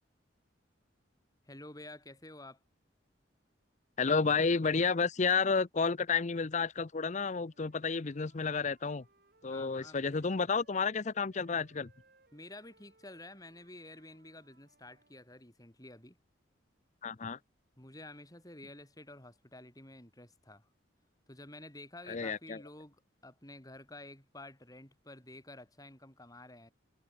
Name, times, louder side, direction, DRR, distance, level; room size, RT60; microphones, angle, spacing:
voice 1, 1.5-2.6 9.4-10.3 12.3-16.2 17.8-20.7 21.3-26.7, left 2 dB, 20° left, 4.7 m, -51 dB
voice 2, 4.0-9.0 9.4-11.9 17.0-17.4 22.1-22.6, left 5 dB, 40° left, 0.6 m, -31 dB
Wind instrument woodwind instrument, 7.4-11.0 11.3-15.2, right 3 dB, 55° right, 5.2 m, -69 dB
head